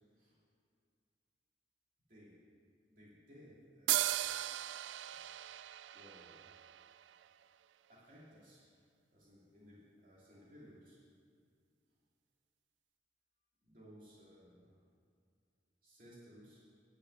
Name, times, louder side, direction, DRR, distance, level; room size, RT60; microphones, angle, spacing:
voice 1, 2.9-4.3 5.0-5.3 5.9-6.4 7.9-8.6 9.1-11.0 13.6-14.8 15.8-16.6, equal, 50° right, -8 dB, 2.5 m, -59 dB
sound 1, 3.9-7.4, right 14 dB, 85° right, 0.3 m, -37 dB
10.0 x 6.5 x 8.7 m, 2.2 s
head